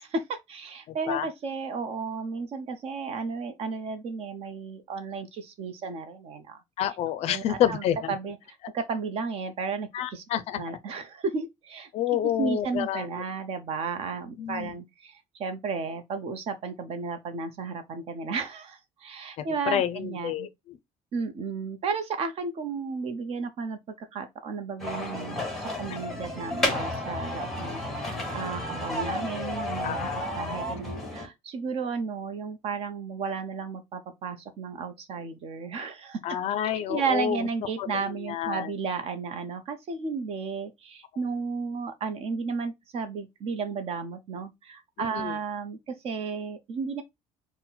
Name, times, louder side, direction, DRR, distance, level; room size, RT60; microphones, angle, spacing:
voice 1, 0.0-6.6 7.2-8.4 8.7-10.2 10.6-11.9 12.4-20.5 21.1-30.1 30.4-36.2 36.6-47.0, right 5 dB, 45° right, 0.7 m, -33 dB
voice 2, 0.9-1.3 6.8-8.1 9.9-10.8 11.9-13.1 14.4-14.8 19.4-20.8 29.8-30.3 36.2-37.5 37.8-38.8 45.0-45.4, left 11 dB, 50° left, 0.4 m, -29 dB
sound 1, 24.8-31.3, left 1 dB, ahead, 1.0 m, -32 dB
4.2 x 2.1 x 3.8 m
cardioid pair, 165°, 14 cm